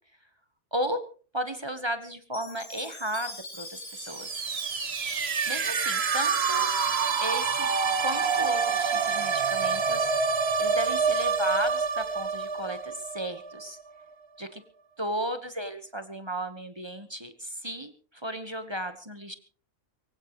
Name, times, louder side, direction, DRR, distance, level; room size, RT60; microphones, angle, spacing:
voice 1, 0.7-1.0 1.3-4.3 5.4-6.7 7.2-7.7 8.0-10.1 10.6-13.8 14.4-14.6 15.0-19.3, right 1 dB, 20° right, 9 dB, 1.3 m, -34 dB
Chime, 2.3-6.7, left 2 dB, 80° left, 7.2 m, -44 dB
sound 1, 3.9-13.7, right 5 dB, 50° right, 1.4 m, -27 dB
23.5 x 16.5 x 3.2 m, 0.40 s
omnidirectional pair, 1.4 m